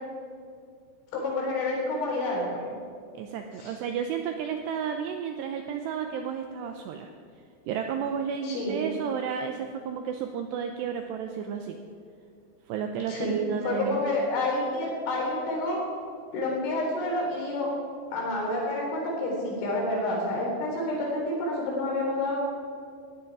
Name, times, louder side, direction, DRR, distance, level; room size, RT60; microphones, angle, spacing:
voice 1, 1.1-2.6 3.6-3.7 8.4-8.8 13.1-15.8 16.3-17.7 18.1-22.4, left 1 dB, 70° left, -2 dB, 6.1 m, -29 dB
voice 2, 3.1-7.1 7.7-11.8 12.7-14.0, right 7 dB, 80° right, 5 dB, 2.5 m, -32 dB
19.0 x 14.5 x 4.8 m, 2.2 s
omnidirectional pair, 5.7 m